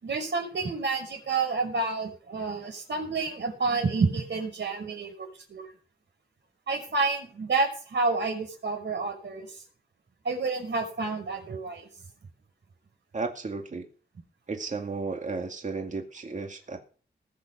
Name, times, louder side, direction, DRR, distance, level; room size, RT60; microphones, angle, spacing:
voice 1, 0.0-5.7 6.7-9.5 10.2-11.9, right 3 dB, 65° right, 3 dB, 5.7 m, -29 dB
voice 2, 13.1-13.9 14.5-16.8, right 4 dB, 40° right, 4 dB, 2.1 m, -34 dB
20.0 x 7.0 x 6.1 m, 0.41 s
wide cardioid pair, 130°, 20 cm